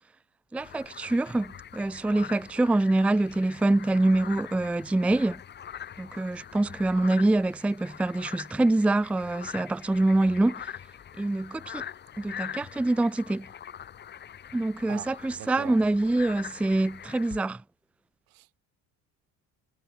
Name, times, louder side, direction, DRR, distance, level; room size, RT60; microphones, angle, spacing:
voice 1, 0.5-5.4 6.0-10.7 11.2-11.8 12.2-13.5 14.5-17.6, right 2 dB, 5° right, 0.5 m, -25 dB
sound 1, 0.6-17.4, left 9 dB, 30° left, 4.6 m, -43 dB
voice 2, 14.9-15.8 18.3-18.6, right 24 dB, 80° right, 7.3 m, -43 dB
cardioid pair, 175°, 34 cm